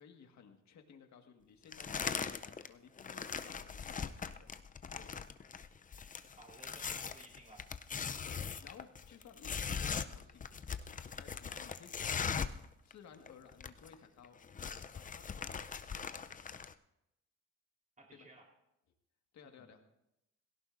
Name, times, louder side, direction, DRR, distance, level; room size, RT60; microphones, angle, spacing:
voice 1, 0.0-4.5 4.9-5.1 8.2-14.4 14.6-15.6 18.1-18.3 19.3-19.8, left 7 dB, 65° left, 4 dB, 1.7 m, -58 dB
sound 1, 1.7-2.7 3.0-12.7 12.9-13.0 13.3-13.9 14.2-16.7, left 6 dB, 25° left, 0.5 m, -40 dB
voice 2, 6.4-7.7 18.0-18.5 19.6-19.7, right 2 dB, 25° right, 0 dB, 3.8 m, -58 dB
18.0 x 16.5 x 2.6 m, 0.86 s
cardioid pair, 90°, 30 cm